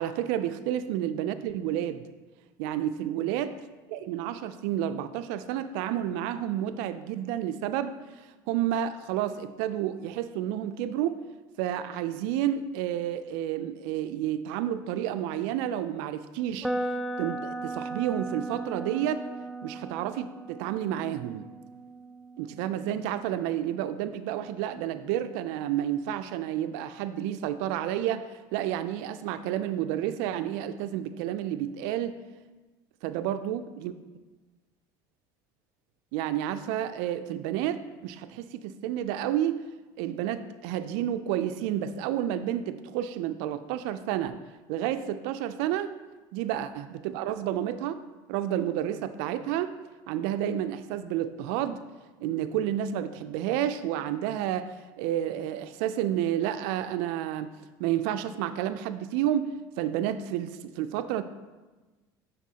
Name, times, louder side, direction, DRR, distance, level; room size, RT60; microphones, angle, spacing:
voice 1, 0.0-2.0 2.6-3.5 3.9-8.0 8.5-11.2 11.6-16.7 17.2-19.2 19.6-21.5 22.4-32.2 33.0-33.9 36.1-39.7 40.0-44.4 44.7-45.9 46.3-48.0 48.3-49.7 50.1-51.8 52.2-57.5 57.8-61.2, right 11 dB, 75° right, 12 dB, 0.4 m, -30 dB
sound 1, 16.6-24.6, right 2 dB, ahead, 0.4 m, -37 dB
9.5 x 4.0 x 2.8 m, 1.2 s
supercardioid pair, 95°, 11 cm